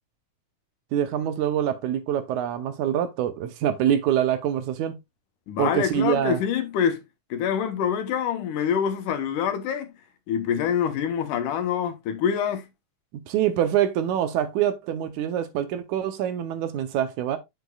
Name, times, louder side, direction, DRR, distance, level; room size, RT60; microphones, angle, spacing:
voice 1, 0.9-5.0 5.6-6.4 13.3-17.4, right 10 dB, 75° right, 2.2 m, -25 dB
voice 2, 5.5-7.0 7.3-9.9 10.3-12.7, left 8 dB, 75° left, 2.5 m, -25 dB
8.1 x 6.6 x 2.3 m
omnidirectional pair, 3.6 m